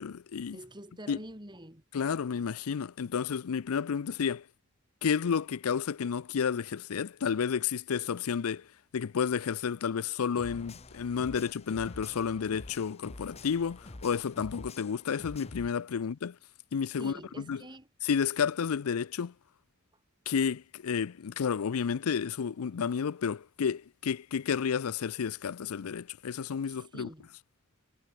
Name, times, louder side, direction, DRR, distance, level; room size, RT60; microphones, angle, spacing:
voice 1, 0.0-0.6 1.1-1.2 1.9-4.4 5.0-8.7 8.9-16.4 16.7-17.6 18.0-19.3 20.3-27.1, left 6 dB, 85° left, 0.5 m, -31 dB
voice 2, 0.5-1.8 16.0-16.1 17.0-17.9 26.7-27.3, right 1 dB, 20° right, 5.3 m, -46 dB
sound 1, 10.4-15.7, left 2 dB, 30° left, 1.0 m, -47 dB
head